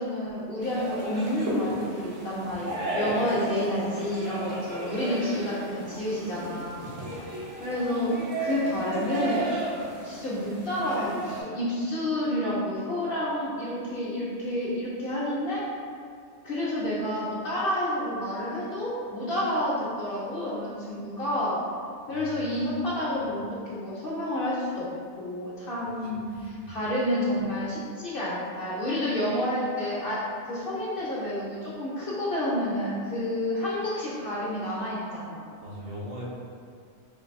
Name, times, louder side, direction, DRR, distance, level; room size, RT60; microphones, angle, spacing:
voice 1, 0.0-6.8 7.6-9.5 10.0-15.6 16.4-21.6 22.1-24.9 25.2-35.4, left 1 dB, 55° left, -7 dB, 0.7 m, -29 dB
sound 1, 0.6-11.4, right 2 dB, 75° right, 1.1 m, -34 dB
voice 2, 6.9-7.3 22.1-22.7 26.0-26.8 35.6-36.2, left 1 dB, 55° right, -6 dB, 0.9 m, -42 dB
4.5 x 2.6 x 2.5 m, 2.3 s
omnidirectional pair, 1.3 m